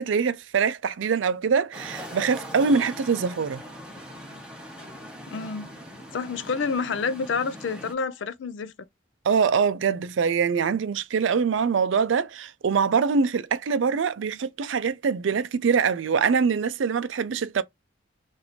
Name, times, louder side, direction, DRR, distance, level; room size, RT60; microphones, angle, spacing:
voice 1, 0.0-3.6 9.2-17.6, right 5 dB, 75° right, 0.4 m, -24 dB
City Traffic (Outdoor), 1.7-7.9, equal, 5° right, 1.0 m, -41 dB
voice 2, 5.3-5.7 6.1-8.7, left 5 dB, 70° left, 0.4 m, -28 dB
2.9 x 2.6 x 4.1 m
head